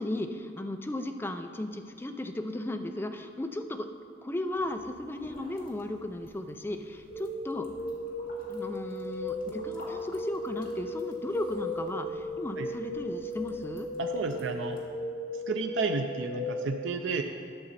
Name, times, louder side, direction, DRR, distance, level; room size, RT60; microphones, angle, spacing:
voice 1, 0.0-3.9 4.2-7.7 8.5-13.9, left 1 dB, 10° left, 6 dB, 0.4 m, -35 dB
sound 1, 4.5-14.9, equal, 55° left, 1.8 m, -53 dB
sound 2, 7.1-16.7, left 1 dB, 85° left, 1.9 m, -36 dB
voice 2, 14.0-14.8 15.5-17.2, right 4 dB, 90° right, 5 dB, 0.5 m, -31 dB
11.0 x 6.9 x 4.1 m, 2.3 s
head